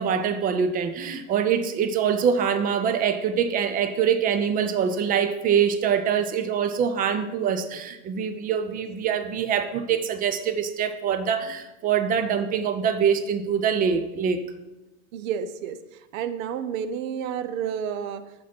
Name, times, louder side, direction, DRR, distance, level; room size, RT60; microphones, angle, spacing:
voice 1, 0.0-14.4, right 7 dB, 20° right, 10 dB, 0.3 m, -24 dB
voice 2, 15.1-15.8 16.1-18.5, right 8 dB, 60° right, 12 dB, 0.7 m, -30 dB
6.0 x 4.9 x 4.3 m, 1.0 s
hypercardioid pair, 95°, 45 cm